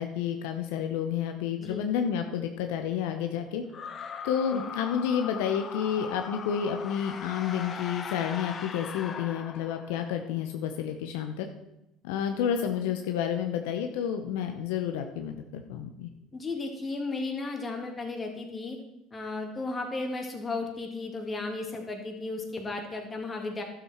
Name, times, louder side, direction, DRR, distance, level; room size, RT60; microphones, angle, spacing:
voice 1, 0.0-3.6 4.2-11.5 12.0-16.1, left 8 dB, 80° left, 5 dB, 0.8 m, -30 dB
sound 1, 3.7-10.1, left 6 dB, 40° left, 1.0 m, -40 dB
voice 2, 16.3-18.8 19.1-23.6, left 3 dB, 25° left, 2 dB, 2.4 m, -34 dB
12.0 x 7.4 x 4.5 m, 0.90 s
hypercardioid pair, 80°, 0 cm